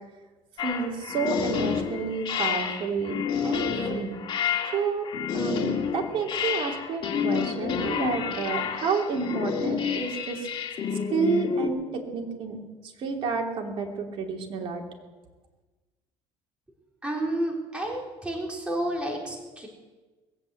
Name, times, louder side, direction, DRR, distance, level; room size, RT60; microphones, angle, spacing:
sound 1, 0.6-11.7, left 7 dB, 45° left, 2.3 m, -29 dB
voice 1, 0.6-3.2 3.4-4.2 4.7-5.1 5.3-10.5 11.1-12.6 12.8-14.8, right 5 dB, 55° right, 1 dB, 3.0 m, -30 dB
voice 2, 17.0-19.7, right 1 dB, 10° right, -1 dB, 4.1 m, -30 dB
21.0 x 8.5 x 8.0 m, 1.3 s
cardioid pair, 120°, 11 cm